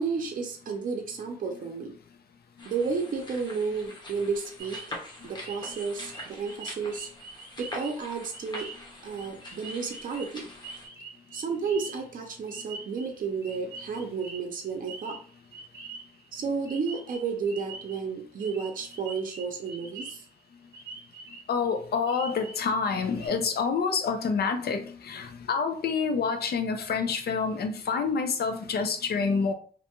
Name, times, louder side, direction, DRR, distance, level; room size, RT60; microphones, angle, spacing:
voice 1, 0.0-2.0 2.6-4.8 5.2-7.1 7.6-8.7 9.0-10.5 11.3-15.2 16.3-20.2 26.7-26.8, right 5 dB, 60° right, 3 dB, 0.5 m, -32 dB
sound 1, 2.6-10.9, left 1 dB, 30° left, 0.7 m, -44 dB
sound 2, 4.6-16.3 16.7-18.0 18.4-20.4 20.7-21.6 22.1-22.7 23.0-23.3, right 4 dB, 20° right, 0.7 m, -45 dB
voice 2, 21.5-29.5, left 5 dB, 85° left, 7 dB, 0.5 m, -27 dB
2.5 x 2.2 x 2.9 m, 0.42 s
wide cardioid pair, 165°, 16 cm